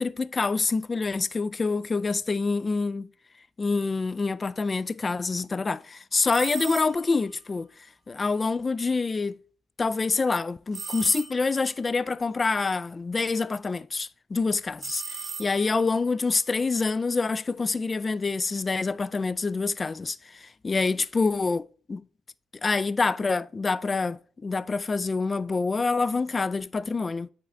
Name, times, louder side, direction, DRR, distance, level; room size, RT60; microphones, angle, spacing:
voice 1, 0.0-3.1 3.6-7.7 8.1-9.3 9.8-15.0 15.4-20.2 20.6-22.0 22.6-27.3, left 4 dB, 30° left, 0.3 m, -26 dB
sound 1, 6.3-7.2 10.7-11.7 14.8-15.9, right 5 dB, 45° right, 1.1 m, -38 dB
9.5 x 3.8 x 3.3 m
cardioid pair, 90°, 0 cm